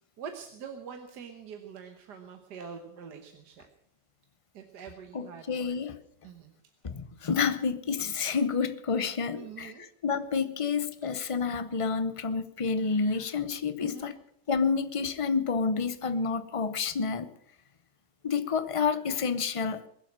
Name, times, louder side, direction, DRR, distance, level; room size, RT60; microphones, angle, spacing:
voice 1, 0.2-3.7 4.5-5.8 6.2-6.5 9.3-9.8 13.8-14.2, right 6 dB, 75° right, 5 dB, 1.8 m, -44 dB
voice 2, 5.1-6.0 6.8-14.2 14.5-17.3 18.2-19.9, left 5 dB, 35° left, 12 dB, 0.5 m, -29 dB
21.5 x 7.5 x 7.5 m, 0.76 s
omnidirectional pair, 1.8 m